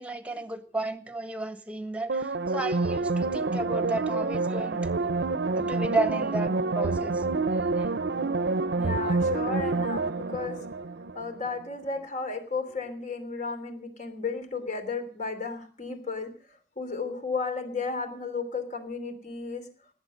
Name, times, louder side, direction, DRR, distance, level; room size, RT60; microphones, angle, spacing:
voice 1, 0.0-7.2 7.5-7.9 9.0-9.1, right 2 dB, 5° right, 11 dB, 1.3 m, -33 dB
sound 1, 2.1-11.5 11.8-11.9, right 3 dB, 75° right, 0.7 m, -28 dB
voice 2, 8.7-10.6 11.1-16.3 16.8-19.7, left 4 dB, 45° left, 8 dB, 3.2 m, -33 dB
18.5 x 8.5 x 7.7 m, 0.42 s
head